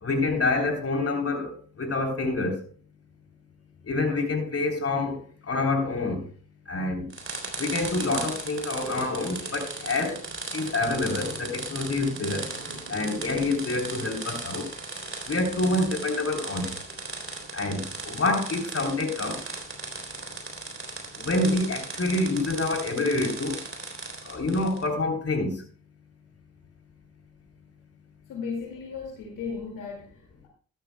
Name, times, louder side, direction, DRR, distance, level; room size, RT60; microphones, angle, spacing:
voice 1, 0.0-2.6 3.9-5.2 5.5-6.2 6.7-7.1 7.6-10.2 10.5-12.4 12.9-14.7 15.3-16.7 17.5-19.4 21.2-23.6 24.3-25.5, left 2 dB, 45° left, 3.6 m, -27 dB
sound 1, 7.1-24.9, right 3 dB, 40° right, 3.4 m, -37 dB
sound 2, 8.7-14.0, right 2 dB, 85° right, 3.9 m, -45 dB
voice 2, 28.3-30.5, left 5 dB, 75° left, 2.4 m, -36 dB
13.0 x 11.5 x 2.3 m
hypercardioid pair, 45°, 32 cm